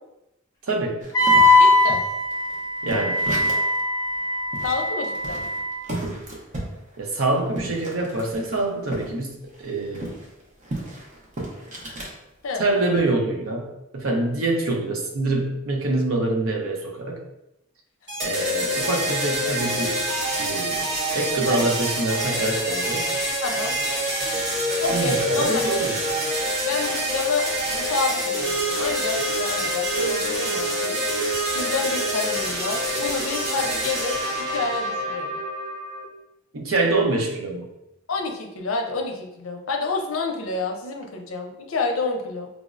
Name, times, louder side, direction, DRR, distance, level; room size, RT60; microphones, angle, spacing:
voice 1, 0.6-1.0 2.8-3.2 7.0-10.1 12.6-17.2 18.2-20.0 20.4-23.1 24.9-26.1 36.5-37.7, right 2 dB, 80° right, 1 dB, 0.7 m, -25 dB
sound 1, 1.0-3.8 4.2-4.3 4.5-9.1 9.4-12.2 12.6-13.0, right 1 dB, 35° right, 0.7 m, -34 dB
Wind instrument woodwind instrument, 1.1-5.8, left 2 dB, 15° left, 0.5 m, -20 dB
voice 2, 1.6-2.0 4.6-5.4 12.4-12.6 21.5-21.6 23.4-23.8 24.8-25.6 26.7-35.4 38.1-42.5, left 3 dB, 75° left, 2 dB, 0.6 m, -29 dB
sound 2, 18.1-36.0, right 1 dB, 55° right, 1.2 m, -26 dB
4.9 x 2.0 x 2.4 m, 0.89 s
head